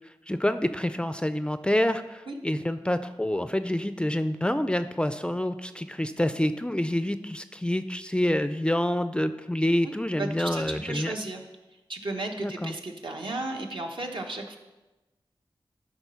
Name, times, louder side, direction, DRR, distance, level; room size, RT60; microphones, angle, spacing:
voice 1, 0.3-11.1 12.4-12.7, left 1 dB, 10° left, 10 dB, 0.4 m, -27 dB
voice 2, 9.8-11.4 11.9-14.6, right 2 dB, 65° right, 2 dB, 1.2 m, -34 dB
12.5 x 4.2 x 5.6 m, 1.1 s
wide cardioid pair, 70°, 9 cm